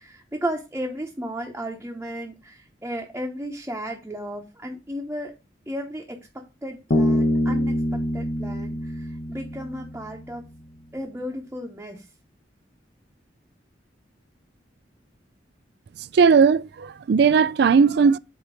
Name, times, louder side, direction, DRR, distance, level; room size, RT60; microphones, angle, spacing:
voice 1, 0.0-5.3 5.7-10.4 10.9-12.1, equal, 10° right, 0.9 m, -34 dB
Bass guitar, 6.9-10.4, equal, 55° left, 1.0 m, -25 dB
voice 2, 16.1-18.2, right 5 dB, 60° right, 0.3 m, -17 dB
8.2 x 2.9 x 6.2 m
head